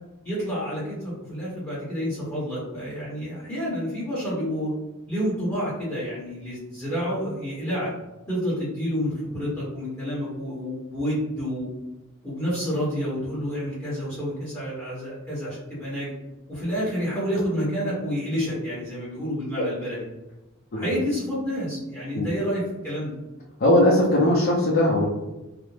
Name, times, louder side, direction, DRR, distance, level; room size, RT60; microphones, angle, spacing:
voice 1, 0.2-4.7 5.1-7.9 8.3-11.7 12.2-16.1 16.5-20.0 20.8-23.1, equal, 10° left, -9 dB, 0.9 m, -29 dB
voice 2, 23.6-25.1, left 1 dB, 45° left, -5 dB, 0.5 m, -19 dB
2.5 x 2.1 x 3.1 m, 1.0 s
head